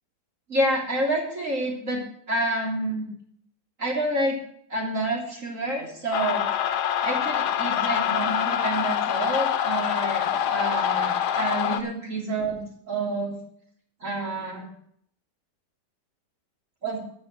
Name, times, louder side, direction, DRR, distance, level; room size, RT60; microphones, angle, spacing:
voice 1, 0.5-2.0 2.3-3.1 3.8-4.4 4.7-6.4 7.0-12.6 12.9-13.3 14.0-14.7 16.8-17.0, right 1 dB, 50° right, -1 dB, 3.6 m, -28 dB
sound 1, 6.1-11.8, left 9 dB, 75° left, 1.4 m, -25 dB
14.0 x 6.2 x 7.6 m, 0.66 s
omnidirectional pair, 1.8 m